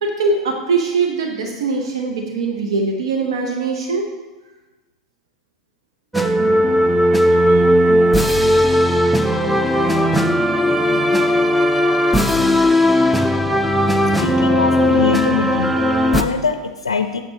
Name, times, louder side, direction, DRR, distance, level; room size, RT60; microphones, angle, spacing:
voice 1, 0.0-4.1 7.5-7.7, right 4 dB, 70° right, 1 dB, 1.0 m, -21 dB
sound 1, 6.1-16.2, equal, ahead, 0.5 m, -16 dB
voice 2, 14.2-17.2, left 5 dB, 85° left, 8 dB, 0.4 m, -23 dB
9.6 x 6.7 x 2.9 m, 1.2 s
figure-of-eight pair, 90°, 3 cm